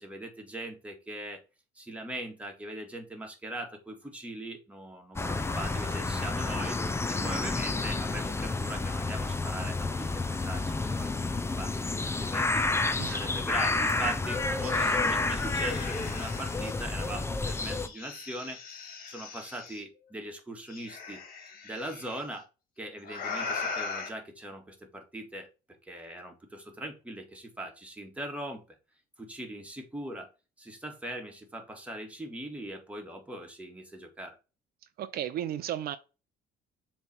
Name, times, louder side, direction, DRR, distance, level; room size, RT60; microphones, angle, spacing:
voice 1, 0.0-1.4 1.8-6.8 7.1-11.8 12.2-21.2 21.6-22.5 22.8-25.5 25.8-28.6 29.2-30.3 30.6-34.4, right 1 dB, 10° right, 1.8 m, -41 dB
sound 1, 5.2-17.9, left 3 dB, 15° left, 0.7 m, -30 dB
sound 2, 13.9-14.0 14.3-16.7 17.4-19.8 20.7-22.2 23.0-24.1, left 5 dB, 60° left, 2.3 m, -40 dB
voice 2, 14.6-15.0 35.0-36.0, right 11 dB, 65° right, 0.6 m, -35 dB
7.1 x 3.3 x 4.3 m
cardioid pair, 110°, 17 cm